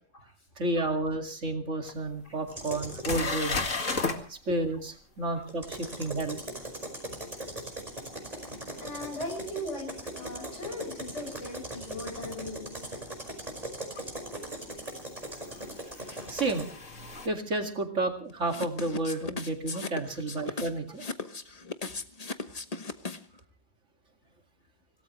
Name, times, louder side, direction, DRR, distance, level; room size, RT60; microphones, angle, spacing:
voice 1, 0.6-3.6 4.3-6.4 16.3-16.7 17.2-21.0, right 2 dB, 70° right, 4 dB, 2.6 m, -31 dB
sound 1, 1.9-2.0 2.5-2.6 3.0-4.2 9.3-9.4 12.2-12.3 14.0-14.1 15.4-17.3, left 3 dB, 85° left, 2.5 m, -33 dB
sound 2, 2.5-3.2 5.5-16.7, right 1 dB, 30° right, 5.4 m, -40 dB
voice 2, 8.8-12.9 15.3-15.4 16.2-16.3, left 1 dB, 70° left, 5 dB, 6.9 m, -39 dB
sound 3, 18.5-23.4, left 3 dB, 30° left, 1.1 m, -37 dB
25.5 x 18.0 x 3.1 m, 0.40 s
omnidirectional pair, 1.3 m